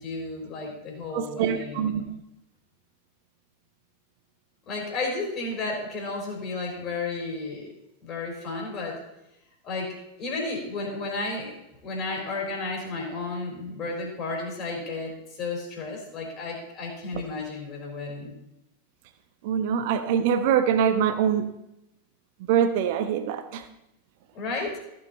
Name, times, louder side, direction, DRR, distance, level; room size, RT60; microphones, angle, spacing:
voice 1, 0.0-2.0 4.7-7.7 8.0-9.0 9.6-11.5 11.8-18.4 24.3-24.8, left 3 dB, 35° left, 0 dB, 4.2 m, -33 dB
voice 2, 1.1-2.0 19.4-21.4 22.5-23.6, right 8 dB, 50° right, 9 dB, 1.1 m, -24 dB
15.0 x 6.8 x 4.2 m, 0.87 s
figure-of-eight pair, 90°, 0 cm